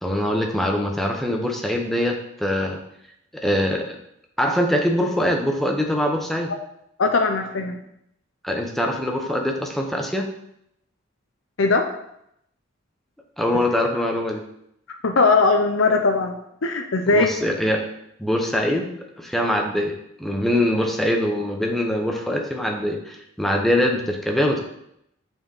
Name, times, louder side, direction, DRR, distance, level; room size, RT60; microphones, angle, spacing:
voice 1, 0.0-2.8 3.3-4.0 4.4-6.5 8.4-10.3 13.4-14.4 17.1-17.9 18.2-18.9 19.2-24.6, left 1 dB, ahead, 1 dB, 1.0 m, -23 dB
voice 2, 7.0-7.8 11.6-11.9 15.0-17.3, left 3 dB, 75° left, 4 dB, 0.7 m, -19 dB
6.6 x 4.6 x 5.5 m, 0.76 s
head